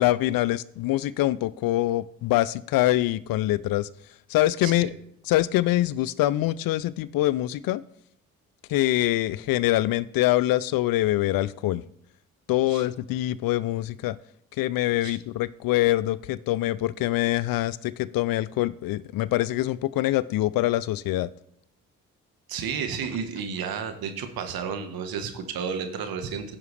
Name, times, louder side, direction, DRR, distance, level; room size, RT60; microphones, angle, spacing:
voice 1, 0.0-3.9 4.3-4.9 5.2-7.8 8.7-11.8 12.5-14.2 14.6-21.3, left 15 dB, 60° left, 19 dB, 0.5 m, -24 dB
voice 2, 22.5-26.6, right 6 dB, 60° right, 7 dB, 1.4 m, -32 dB
15.0 x 5.7 x 3.3 m, 0.71 s
hypercardioid pair, 45°, 40 cm